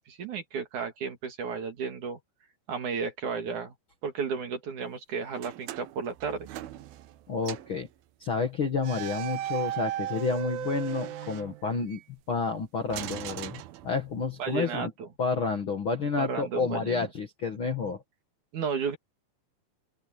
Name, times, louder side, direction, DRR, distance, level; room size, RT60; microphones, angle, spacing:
voice 1, 0.0-2.2 2.7-3.7 4.0-6.5 14.4-15.1 16.2-17.1 18.5-19.0, right 6 dB, 55° right, 3.3 m, -33 dB
sound 1, 5.4-7.2 7.4-7.8 8.8-12.0 12.9-14.3, right 12 dB, 75° right, 2.6 m, -37 dB
voice 2, 7.3-7.9 8.2-12.0 12.3-14.9 15.2-18.0, left 5 dB, 50° left, 1.6 m, -30 dB
open air
omnidirectional pair, 4.7 m